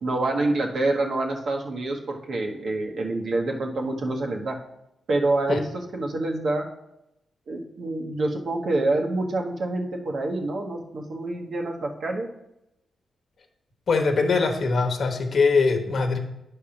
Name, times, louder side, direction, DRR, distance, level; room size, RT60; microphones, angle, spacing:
voice 1, 0.0-4.6 5.1-6.6 7.5-12.3, right 2 dB, 60° right, 1 dB, 1.2 m, -27 dB
voice 2, 13.9-16.2, left 4 dB, 50° left, 4 dB, 1.1 m, -22 dB
10.0 x 3.5 x 5.8 m, 0.86 s
wide cardioid pair, 130°, 0 cm